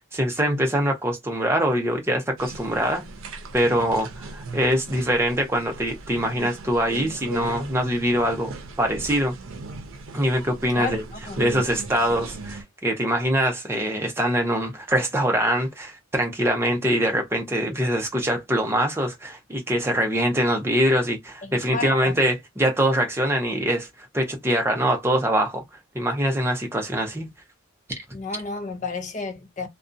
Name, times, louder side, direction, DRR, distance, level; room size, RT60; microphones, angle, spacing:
voice 1, 0.1-3.0 3.5-9.3 10.1-11.0 11.4-23.9 24.1-25.6 25.9-27.3, equal, 10° right, 0.5 m, -23 dB
sound 1, 2.4-12.6, right 3 dB, 90° right, 0.5 m, -38 dB
voice 2, 21.5-22.2 28.1-29.7, left 4 dB, 40° left, 0.5 m, -31 dB
2.6 x 2.2 x 2.5 m
head